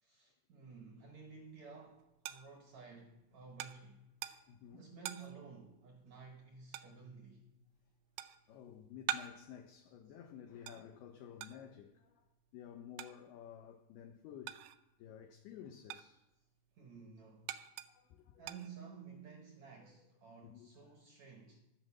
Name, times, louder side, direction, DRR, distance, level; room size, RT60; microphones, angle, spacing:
voice 1, 0.0-4.2 4.7-7.5 16.8-17.6 18.4-21.6, right 5 dB, 65° right, 1.8 m, -54 dB
sound 1, 1.2-15.0 15.4-19.3, right 12 dB, 80° right, 2.7 m, -48 dB
voice 2, 4.2-4.9 8.5-12.3 12.5-14.6 15.0-16.2 17.9-18.4 19.8-19.9 20.4-20.9, left 9 dB, 75° left, 2.5 m, -53 dB
11.0 x 8.9 x 7.4 m
omnidirectional pair, 5.2 m